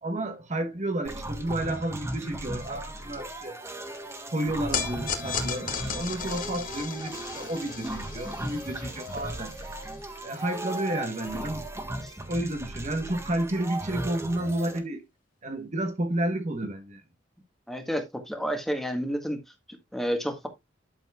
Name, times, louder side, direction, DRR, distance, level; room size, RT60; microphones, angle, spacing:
voice 1, 0.0-3.6 4.3-9.7 10.2-11.7 12.3-15.0 15.4-17.0, right 1 dB, 40° right, 1.2 m, -31 dB
sound 1, 1.0-14.8, right 1 dB, 15° right, 1.6 m, -37 dB
sound 2, 4.7-11.1, left 6 dB, 45° left, 2.2 m, -36 dB
voice 2, 17.7-19.4 19.9-20.5, equal, ahead, 1.7 m, -30 dB
11.5 x 7.1 x 2.4 m
head